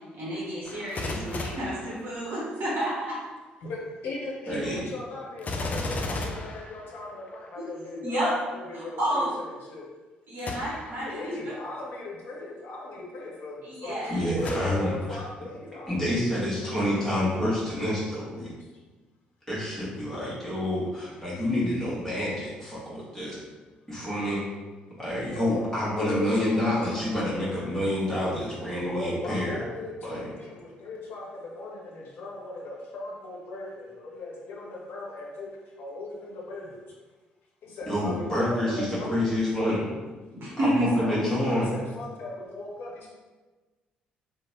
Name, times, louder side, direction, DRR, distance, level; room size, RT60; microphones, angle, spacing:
voice 1, 0.1-3.2 7.6-8.3 8.7-9.3 10.3-11.2 13.6-14.2 40.3-40.9, right 1 dB, 55° right, -6 dB, 0.8 m, -30 dB
Gunshot gunfire, 0.6-2.6 5.4-7.5 10.4-11.0 11.7-11.8 14.4-15.2 15.7-15.8, left 2 dB, 35° left, 0.4 m, -35 dB
voice 2, 3.6-9.9 10.6-14.1 14.4-16.2 25.2-26.8 28.8-35.5 35.8-36.8 37.6-39.3 40.8-43.1, left 2 dB, 55° left, -3 dB, 0.8 m, -38 dB
voice 3, 4.5-4.8 14.1-15.2 15.9-18.5 19.5-23.4 23.9-24.4 25.0-29.6 30.0-30.3 37.9-39.8 40.6-41.7, left 1 dB, 10° left, -9 dB, 1.1 m, -28 dB
2.8 x 2.1 x 3.0 m, 1.2 s
figure-of-eight pair, 45°, 4 cm